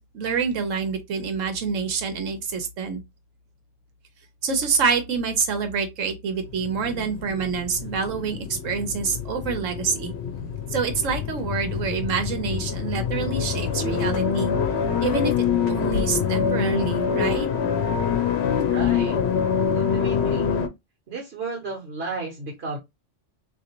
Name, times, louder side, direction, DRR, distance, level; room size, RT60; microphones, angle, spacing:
voice 1, 0.0-3.0 4.4-10.1 10.7-14.5 15.0-17.5, right 5 dB, 80° right, 1.3 m, -27 dB
sound 1, 6.5-20.7, left 7 dB, 65° left, 0.9 m, -25 dB
voice 2, 18.7-19.2 19.7-20.6 21.1-22.8, right 3 dB, 55° right, 1.3 m, -33 dB
3.8 x 2.8 x 2.9 m
omnidirectional pair, 1.3 m